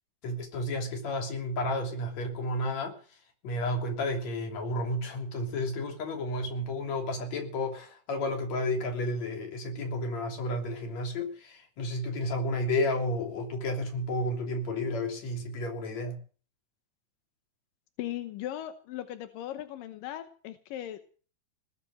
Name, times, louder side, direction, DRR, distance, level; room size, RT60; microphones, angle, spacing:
voice 1, 0.2-3.2 3.4-16.2, left 1 dB, 55° left, 3 dB, 4.4 m, -32 dB
voice 2, 18.0-21.0, left 12 dB, 85° left, 10 dB, 2.7 m, -38 dB
19.5 x 8.8 x 7.8 m, 0.41 s
omnidirectional pair, 3.8 m